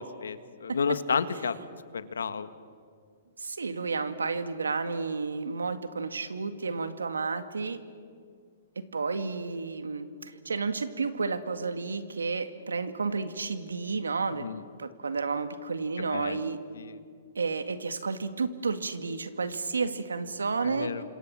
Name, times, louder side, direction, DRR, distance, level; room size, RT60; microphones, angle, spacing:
voice 1, 0.0-1.6 1.9-2.5 14.4-14.6 16.1-16.4 16.7-17.0 20.6-21.0, left 6 dB, 80° left, 12 dB, 1.6 m, -31 dB
voice 2, 3.4-7.8 8.8-14.5 14.8-16.6 17.4-20.9, right 4 dB, 90° right, 10 dB, 2.0 m, -31 dB
29.5 x 26.5 x 7.6 m, 2.2 s
hypercardioid pair, 125°, 0 cm